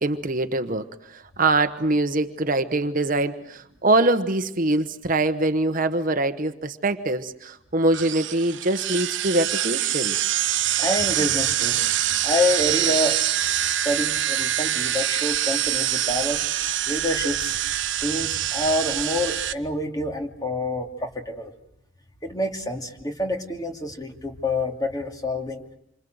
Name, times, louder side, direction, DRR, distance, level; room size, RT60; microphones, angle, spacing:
voice 1, 0.0-10.2, right 2 dB, 40° right, 10 dB, 1.1 m, -23 dB
sound 1, 7.9-19.5, right 12 dB, 65° right, 1.1 m, -25 dB
voice 2, 10.8-11.8 12.2-16.5 16.9-17.6 18.0-21.5 22.2-25.6, left 1 dB, 20° left, 4 dB, 2.8 m, -27 dB
28.0 x 25.5 x 8.0 m, 0.78 s
head